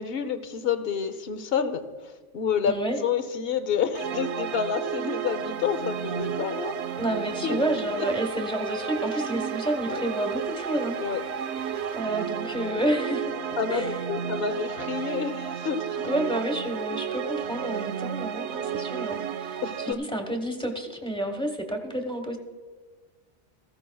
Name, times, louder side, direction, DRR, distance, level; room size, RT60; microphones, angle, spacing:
voice 1, 0.0-2.7 3.0-6.8 7.4-7.6 8.0-8.1 9.9-10.0 11.0-11.2 12.6-12.9 13.6-16.1 19.6-20.0, left 7 dB, 55° left, 10 dB, 1.0 m, -29 dB
voice 2, 2.7-3.0 7.0-11.0 11.9-13.4 13.7-13.9 16.0-22.4, right 1 dB, 5° left, 3 dB, 1.1 m, -30 dB
sound 1, 3.9-19.9, right 8 dB, 70° right, 0.9 m, -32 dB
sound 2, 5.5-12.0, right 2 dB, 90° right, 1.6 m, -47 dB
18.0 x 15.0 x 2.3 m, 1.4 s
omnidirectional pair, 1.2 m